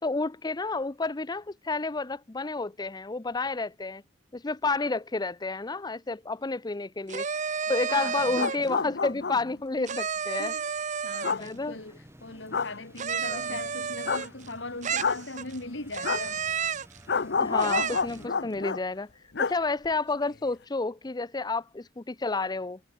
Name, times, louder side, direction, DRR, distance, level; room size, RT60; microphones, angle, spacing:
voice 1, 0.0-4.0 4.3-7.2 7.7-10.5 11.4-11.8 13.2-13.4 17.4-19.1 19.4-22.8, left 3 dB, 20° left, 0.6 m, -30 dB
sound 1, 7.1-8.7 9.9-11.5 13.0-14.5 14.8-15.6 15.9-17.0 17.6-18.2, right 6 dB, 40° right, 0.9 m, -31 dB
voice 2, 7.6-8.3 9.8-10.0 10.4-10.6 11.0-16.4, left 2 dB, 80° left, 3.8 m, -40 dB
sound 2, 8.2-9.6 11.2-11.4 12.5-12.7 14.1-14.3 15.0-15.2 16.0-16.2 17.1-18.8 19.3-19.6 19.8-19.9, left 5 dB, 65° left, 0.9 m, -29 dB
sound 3, 11.2-18.3, equal, 15° right, 7.9 m, -53 dB
head